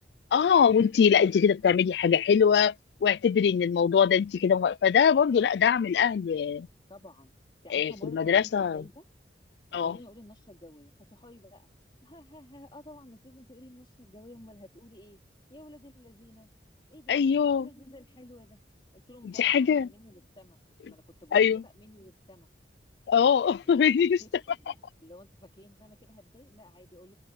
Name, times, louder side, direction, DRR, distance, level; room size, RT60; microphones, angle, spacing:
voice 1, 0.3-2.7 3.0-6.7 7.7-8.8 9.7-10.0 17.1-17.7 19.2-19.9 21.3-21.6 23.1-24.2, left 7 dB, 65° left, 0.3 m, -22 dB
voice 2, 6.9-7.3 7.6-9.0 9.7-11.7 12.0-15.2 15.5-16.5 16.9-17.2 17.5-18.6 18.9-20.6 20.9-22.5 24.2-27.1, left 1 dB, 30° left, 4.1 m, -52 dB
head